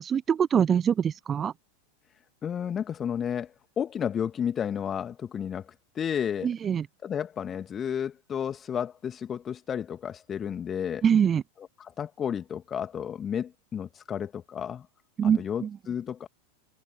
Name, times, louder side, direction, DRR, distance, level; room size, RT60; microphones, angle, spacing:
voice 1, 0.0-1.5 6.4-6.9 11.0-11.4 15.2-15.7, right 8 dB, 25° right, 0.3 m, -24 dB
voice 2, 2.4-6.5 7.0-11.1 11.6-14.9 15.2-16.3, left 8 dB, 25° left, 1.8 m, -32 dB
figure-of-eight pair, 90°, 0 cm